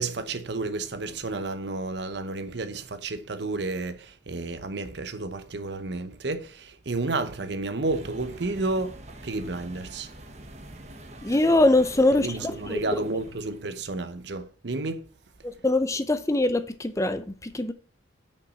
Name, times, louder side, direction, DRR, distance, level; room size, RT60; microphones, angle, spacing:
voice 1, 0.0-9.0 9.2-10.1 12.1-15.0, right 3 dB, 60° right, 0.9 m, -31 dB
sound 1, 7.8-13.9, right 1 dB, 35° right, 1.2 m, -45 dB
voice 2, 11.2-12.8 15.4-17.7, left 2 dB, 15° left, 0.5 m, -23 dB
7.1 x 5.4 x 5.6 m
head